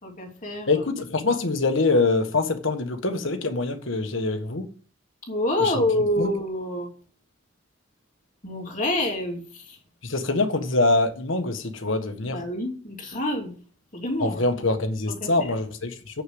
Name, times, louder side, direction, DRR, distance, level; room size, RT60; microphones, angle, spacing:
voice 1, 0.0-0.8 5.3-6.9 8.4-9.8 12.2-13.5 13.9-14.4 15.1-15.5, left 1 dB, 40° left, 3.0 m, -27 dB
voice 2, 0.7-4.7 5.6-5.7 6.2-6.3 10.0-12.4 14.2-16.2, left 2 dB, 70° left, 1.5 m, -24 dB
7.4 x 6.7 x 7.8 m
head